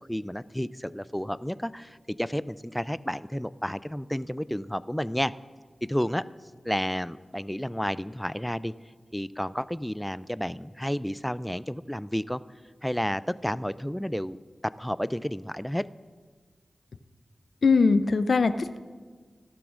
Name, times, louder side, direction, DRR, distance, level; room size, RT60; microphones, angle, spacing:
voice 1, 0.0-5.3 5.9-6.2 6.6-8.7 9.1-12.4 12.8-14.4 14.6-15.8, equal, 5° left, 17 dB, 0.3 m, -31 dB
voice 2, 17.6-18.8, left 4 dB, 80° left, 12 dB, 0.4 m, -21 dB
17.0 x 12.0 x 2.5 m, 1.5 s
cardioid pair, 50°, 0 cm